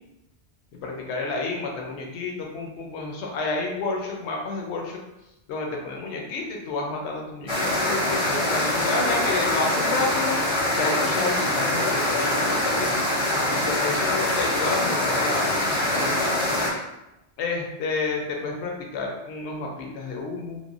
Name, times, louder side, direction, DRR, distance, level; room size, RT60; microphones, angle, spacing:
voice 1, 0.7-5.0 5.5-10.4 10.7-13.0 13.5-15.5 15.9-16.4 17.4-20.6, left 3 dB, 80° left, 0 dB, 0.9 m, -30 dB
sound 1, 7.5-16.7, left 1 dB, 35° left, 0.5 m, -24 dB
3.1 x 2.2 x 2.4 m, 0.93 s
omnidirectional pair, 1.1 m